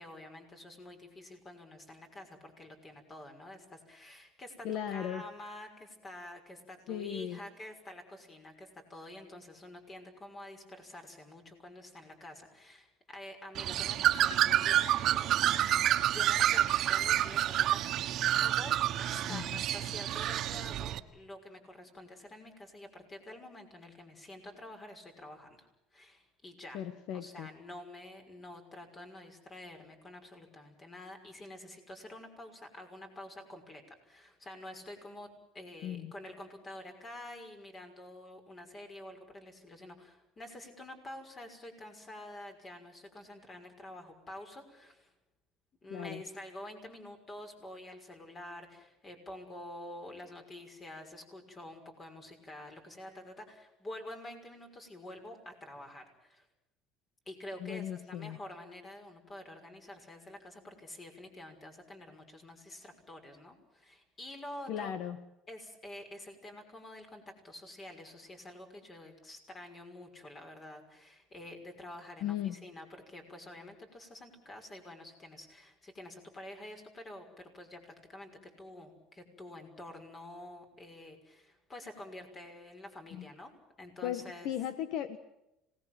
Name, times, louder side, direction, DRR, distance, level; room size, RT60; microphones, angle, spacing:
voice 1, 0.0-26.8 27.1-45.1 45.8-56.5 57.3-64.9 65.5-84.5, left 1 dB, 25° left, 5 dB, 5.9 m, -48 dB
voice 2, 4.6-5.2 6.9-7.4 19.3-19.6 26.7-27.5 35.8-36.1 45.9-46.2 57.6-58.4 64.7-65.2 72.2-72.6 83.1-83.3 84.0-85.2, left 10 dB, 70° left, 12 dB, 1.4 m, -37 dB
Bird, 13.5-21.0, right 12 dB, 50° right, 1.5 m, -28 dB
26.5 x 19.5 x 7.7 m, 0.88 s
cardioid pair, 125°, 0 cm